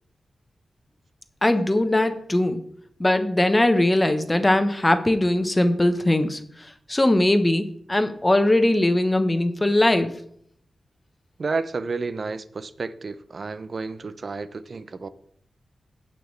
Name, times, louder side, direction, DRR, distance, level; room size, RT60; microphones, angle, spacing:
voice 1, 1.4-2.7 3.0-10.1, left 1 dB, 20° left, 1.0 m, -20 dB
voice 2, 11.4-15.1, right 4 dB, 55° right, 0.6 m, -31 dB
16.5 x 5.9 x 3.3 m
cardioid pair, 70°, 0 cm